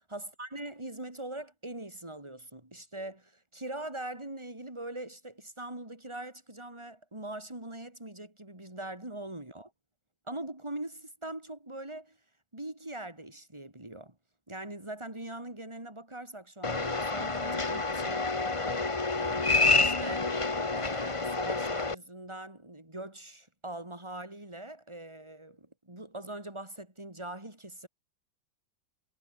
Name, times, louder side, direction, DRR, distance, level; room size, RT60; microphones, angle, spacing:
voice 1, 0.0-9.7 10.3-12.2 12.5-14.1 14.5-18.3 19.2-19.4 19.7-20.4 20.7-27.9, right 1 dB, 15° right, 4.5 m, -42 dB
sound 1, 16.6-21.9, left 3 dB, 20° left, 1.1 m, -28 dB
omnidirectional pair, 2.1 m